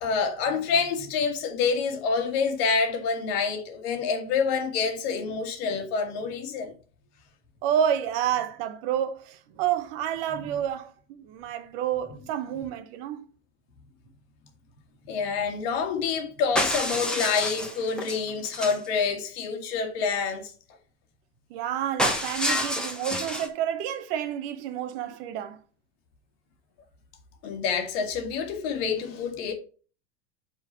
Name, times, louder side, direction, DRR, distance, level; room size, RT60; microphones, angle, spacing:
voice 1, 0.0-6.7 15.1-20.5 27.4-29.5, left 5 dB, 60° left, 1.8 m, -27 dB
voice 2, 7.6-13.2 21.5-25.6, right 9 dB, 60° right, 1.0 m, -29 dB
sound 1, 16.6-18.9 22.0-23.5, left 1 dB, ahead, 1.3 m, -28 dB
5.7 x 4.6 x 5.4 m
hypercardioid pair, 95°, 34 cm